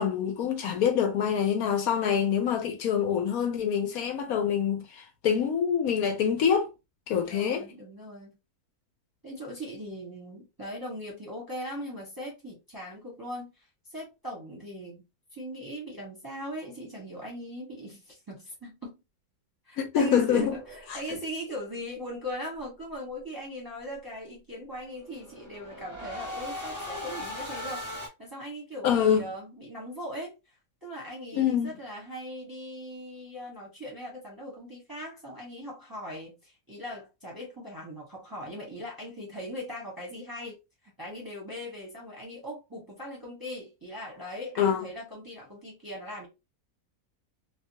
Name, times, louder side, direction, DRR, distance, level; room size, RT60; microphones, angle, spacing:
voice 1, 0.0-6.7 7.1-7.7 19.8-20.5 20.9-21.2 28.8-29.2 31.3-31.7 44.6-44.9, left 8 dB, 70° left, 1.0 m, -26 dB
voice 2, 7.2-8.3 9.2-15.0 15.3-19.0 19.7-40.5 40.8-46.3, equal, 15° right, 0.8 m, -40 dB
sound 1, 20.3-21.2 24.9-28.1, left 1 dB, 25° left, 0.8 m, -39 dB
2.7 x 2.3 x 2.7 m
omnidirectional pair, 1.7 m